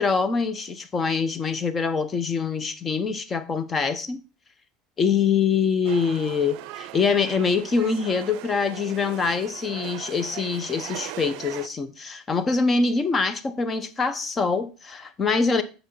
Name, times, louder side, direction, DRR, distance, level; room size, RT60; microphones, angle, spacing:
voice 1, 0.0-4.2 5.0-15.6, left 5 dB, 30° left, 0.9 m, -24 dB
sound 1, 5.8-11.7, right 15 dB, 70° right, 0.5 m, -39 dB
7.4 x 5.7 x 4.0 m
supercardioid pair, 110°, 0 cm